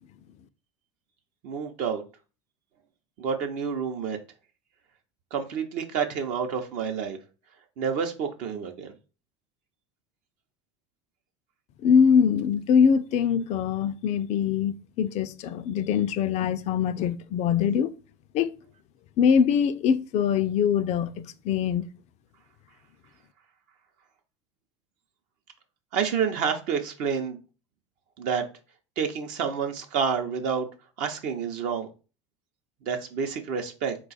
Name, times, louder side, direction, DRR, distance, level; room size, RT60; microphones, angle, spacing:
voice 1, 1.4-2.0 3.2-4.2 5.3-7.2 7.8-8.9 25.9-27.4 28.2-28.4 29.0-30.7 31.0-31.9 32.8-34.0, right 6 dB, 60° right, 0.6 m, -29 dB
voice 2, 11.8-17.9 18.3-18.5 19.2-21.9, left 7 dB, 50° left, 0.4 m, -23 dB
3.8 x 2.3 x 4.0 m
hypercardioid pair, 85°, 15 cm